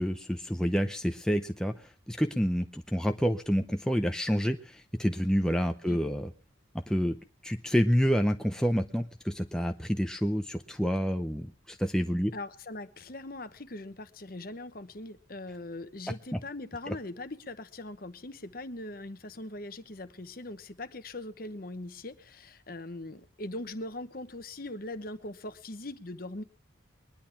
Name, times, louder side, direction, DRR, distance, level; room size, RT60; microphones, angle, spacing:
voice 1, 0.0-1.7 2.1-6.3 6.9-7.2 7.4-12.3 16.3-16.4 16.9-17.0, equal, 5° left, 5 dB, 0.7 m, -28 dB
voice 2, 12.3-26.4, left 2 dB, 45° left, 11 dB, 1.0 m, -41 dB
21.0 x 11.0 x 5.8 m, 0.42 s
head